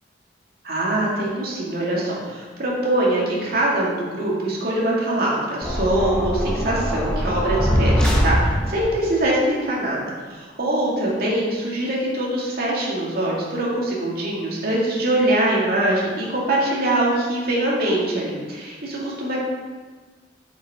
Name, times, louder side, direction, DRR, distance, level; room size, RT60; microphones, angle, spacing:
voice 1, 0.6-19.4, right 1 dB, 55° right, -4 dB, 2.1 m, -23 dB
sound 1, 5.6-9.0, equal, 5° left, 1.1 m, -22 dB
7.7 x 6.9 x 3.6 m, 1.4 s
head